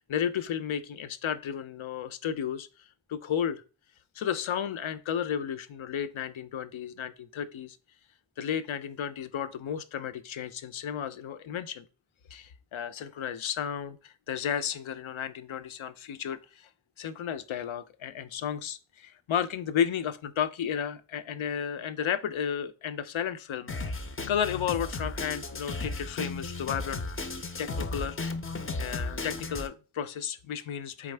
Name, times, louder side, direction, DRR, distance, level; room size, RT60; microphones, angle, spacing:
voice 1, 0.0-2.7 3.1-3.6 4.2-7.8 8.4-11.8 12.3-16.7 17.0-23.7 24.3-27.0 27.6-28.2 28.8-31.1, left 8 dB, 75° left, 0.5 m, -33 dB
Drum kit, 23.7-29.7, left 3 dB, 30° left, 0.5 m, -35 dB
4.0 x 3.6 x 3.2 m
wide cardioid pair, 50°, 49 cm